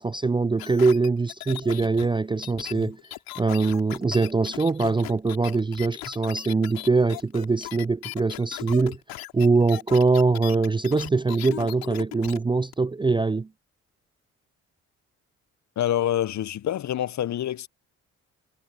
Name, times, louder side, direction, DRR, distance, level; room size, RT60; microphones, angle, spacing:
voice 1, 0.0-3.0 3.4-9.0 9.3-13.5, right 3 dB, 15° right, 0.4 m, -23 dB
sound 1, 0.6-12.4 12.7-12.8, left 16 dB, 80° left, 3.0 m, -38 dB
voice 2, 15.8-17.7, left 11 dB, 50° left, 0.8 m, -26 dB
hypercardioid pair, 50°, 36 cm